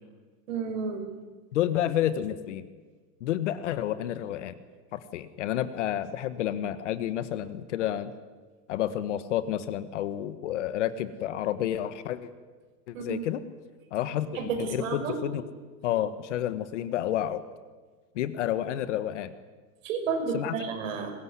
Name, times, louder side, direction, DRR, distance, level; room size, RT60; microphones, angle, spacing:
voice 1, 0.5-1.1 12.9-13.2 14.3-15.2 19.8-21.1, right 5 dB, 55° right, 5 dB, 5.7 m, -31 dB
voice 2, 1.5-2.7 3.2-4.5 4.9-8.1 8.7-12.3 12.9-13.4 13.9-15.4 15.8-17.4 18.1-19.3 20.3-20.5, left 11 dB, 45° left, 13 dB, 1.5 m, -30 dB
23.0 x 21.0 x 9.8 m, 1.4 s
supercardioid pair, 170°, 48 cm